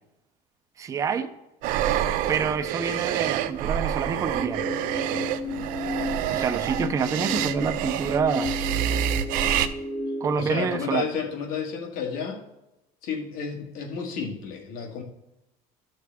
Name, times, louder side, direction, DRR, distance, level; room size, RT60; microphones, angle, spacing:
voice 1, 0.8-1.3 2.3-4.7 6.3-8.5 10.2-11.1, right 6 dB, 20° right, 0.5 m, -27 dB
sound 1, 1.6-9.7, right 11 dB, 65° right, 0.5 m, -27 dB
sound 2, 2.9-10.3, left 2 dB, 5° left, 2.0 m, -34 dB
voice 2, 10.4-12.4 13.0-15.0, left 6 dB, 65° left, 1.9 m, -31 dB
13.0 x 6.5 x 3.5 m
cardioid pair, 170°, 15 cm